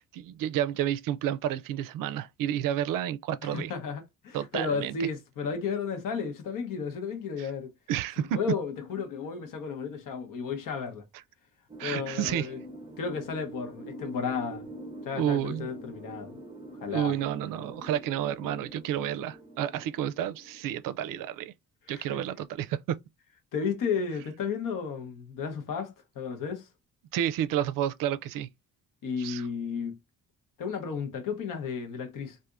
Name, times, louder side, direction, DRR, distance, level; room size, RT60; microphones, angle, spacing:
voice 1, 0.0-3.7 4.3-4.9 7.4-7.5 7.9-8.4 11.8-12.5 15.2-15.7 16.9-21.5 21.9-23.0 27.1-28.5 29.2-29.5, right 11 dB, 70° right, 0.5 m, -30 dB
voice 2, 3.4-7.7 8.2-11.0 11.8-12.6 13.0-14.7 15.0-16.4 16.8-17.2 21.9-22.2 23.5-26.7 29.0-30.0 30.6-32.4, left 5 dB, 70° left, 1.0 m, -33 dB
sound 1, 11.7-21.1, right 2 dB, 15° right, 0.5 m, -45 dB
3.4 x 2.6 x 2.5 m
cardioid pair, 105°, 34 cm